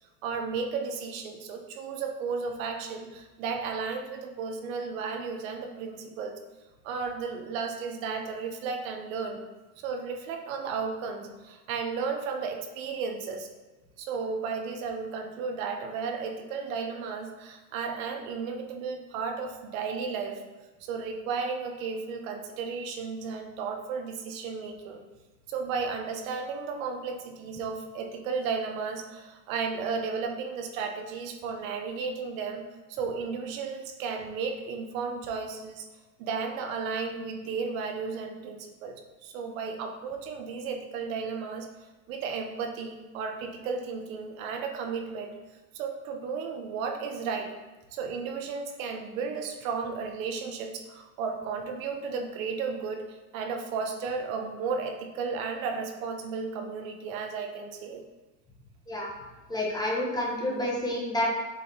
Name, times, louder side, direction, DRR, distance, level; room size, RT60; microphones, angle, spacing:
voice 1, 0.2-6.4 6.8-9.4 9.8-13.5 14.0-20.4 20.8-25.0 25.5-32.6 32.9-35.9 36.2-39.0 39.2-45.3 45.7-47.5 47.9-58.0 59.9-60.1, right 5 dB, 55° right, 4 dB, 1.0 m, -34 dB
voice 2, 59.5-61.3, left 1 dB, 10° left, -2 dB, 1.0 m, -29 dB
7.6 x 4.9 x 2.9 m, 1.2 s
supercardioid pair, 130°, 48 cm